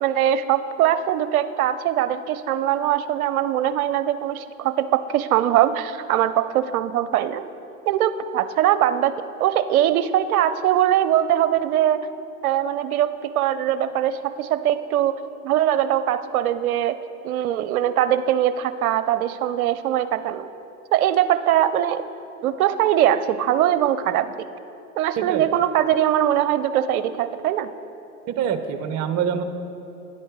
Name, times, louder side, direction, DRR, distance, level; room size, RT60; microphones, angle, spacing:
voice 1, 0.0-7.4 7.9-9.1 9.4-12.0 12.4-15.2 15.4-17.0 17.2-20.5 20.9-22.0 22.4-24.5 25.0-27.7, right 11 dB, 65° right, 13 dB, 0.6 m, -21 dB
voice 2, 25.2-25.5 28.3-29.4, right 8 dB, 35° right, 9 dB, 0.8 m, -25 dB
10.0 x 8.7 x 4.7 m, 2.8 s
hypercardioid pair, 100°, 46 cm